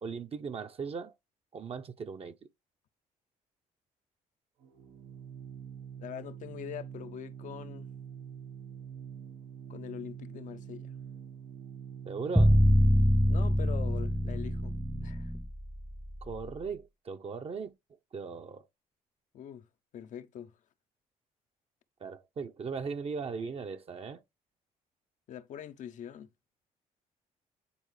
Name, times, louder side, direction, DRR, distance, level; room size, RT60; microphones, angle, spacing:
voice 1, 0.0-1.1 1.5-2.4 12.1-12.6 16.2-17.7 18.1-18.7 22.0-24.2, right 5 dB, 45° right, 0.9 m, -38 dB
Organ, 4.6-15.3, right 8 dB, 80° right, 1.2 m, -45 dB
voice 2, 6.0-7.9 9.7-10.9 13.3-14.8 15.0-15.3 19.3-19.7 19.9-20.5 25.3-26.3, left 9 dB, 65° left, 0.7 m, -43 dB
sound 1, 12.4-16.5, equal, ahead, 0.3 m, -25 dB
9.8 x 4.0 x 3.2 m
cardioid pair, 90°, 14 cm